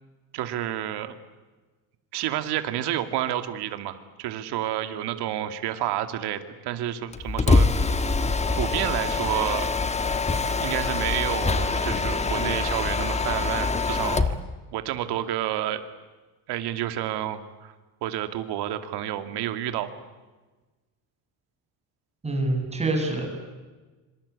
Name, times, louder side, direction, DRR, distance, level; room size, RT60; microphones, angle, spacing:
voice 1, 0.3-1.1 2.1-7.7 8.5-9.7 10.6-14.4 14.7-15.8 16.5-17.7 18.0-19.9, right 12 dB, 85° right, 9 dB, 2.5 m, -29 dB
Mechanisms, 7.1-14.4, left 3 dB, 15° left, 1.5 m, -24 dB
voice 2, 22.2-23.3, right 2 dB, 15° right, 2 dB, 7.8 m, -26 dB
26.5 x 26.0 x 8.4 m, 1.3 s
cardioid pair, 155°, 39 cm